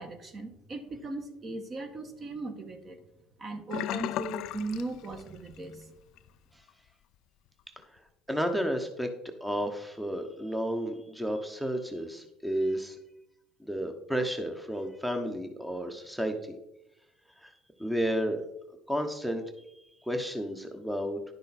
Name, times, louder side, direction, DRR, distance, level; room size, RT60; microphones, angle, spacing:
voice 1, 0.0-3.0 3.4-5.9, right 2 dB, 35° right, 6 dB, 1.4 m, -38 dB
Sink (filling or washing), 3.7-5.7 6.0-6.3 6.7-6.8, left 14 dB, 65° left, 0.3 m, -36 dB
voice 2, 8.3-9.1 9.4-13.0 13.6-16.6 17.4-17.5 17.8-18.4 18.9-19.4 20.0-21.2, equal, 5° right, 5 dB, 1.0 m, -32 dB
10.5 x 6.4 x 4.2 m, 0.90 s
supercardioid pair, 95°, 0 cm